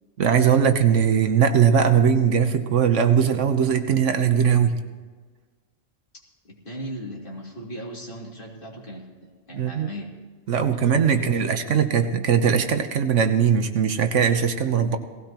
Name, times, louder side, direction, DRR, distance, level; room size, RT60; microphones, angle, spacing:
voice 1, 0.2-4.8 9.5-9.9 10.5-15.0, right 7 dB, 70° right, 8 dB, 1.2 m, -20 dB
voice 2, 6.4-10.1 11.1-12.1, equal, 45° left, -2 dB, 2.7 m, -38 dB
18.0 x 16.0 x 2.9 m, 1.4 s
omnidirectional pair, 1.3 m